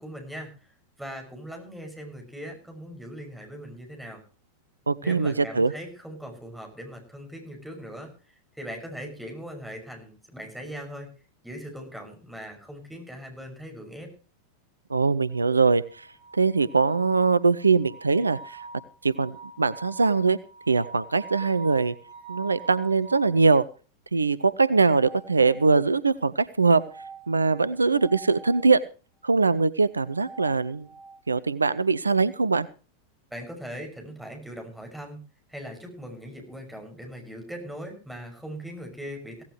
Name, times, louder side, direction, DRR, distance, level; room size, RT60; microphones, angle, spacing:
voice 1, 0.0-4.2 5.0-11.1 11.4-14.1 33.3-35.2 35.5-39.4, equal, ahead, 2 dB, 6.2 m, -40 dB
voice 2, 4.9-5.7 14.9-16.1 16.4-18.7 19.0-20.4 20.7-21.9 22.3-23.6 24.1-26.8 27.3-28.8 29.2-30.9 31.3-32.7, right 4 dB, 80° right, 17 dB, 0.6 m, -22 dB
sound 1, 15.3-23.4 24.7-25.9 26.7-28.7 29.9-31.2, right 3 dB, 60° right, 4.3 m, -45 dB
17.0 x 16.0 x 3.1 m, 0.37 s
figure-of-eight pair, 90°, 0 cm